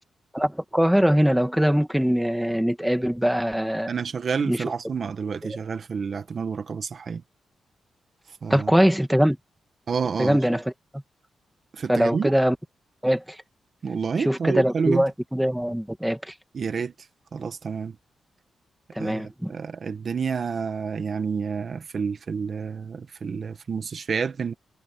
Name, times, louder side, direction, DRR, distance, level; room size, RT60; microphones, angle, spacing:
voice 1, 0.3-3.9 4.4-4.6 8.5-9.4 10.2-10.6 11.9-12.6 13.0-13.2 14.3-16.2 19.0-19.5, equal, 5° right, 1.8 m, -22 dB
voice 2, 3.9-7.2 8.4-8.7 9.9-10.4 11.7-12.3 13.8-15.0 16.5-16.9 17.3-17.9 19.0-24.5, right 5 dB, 55° right, 1.7 m, -29 dB
cardioid pair, 95°, 0 cm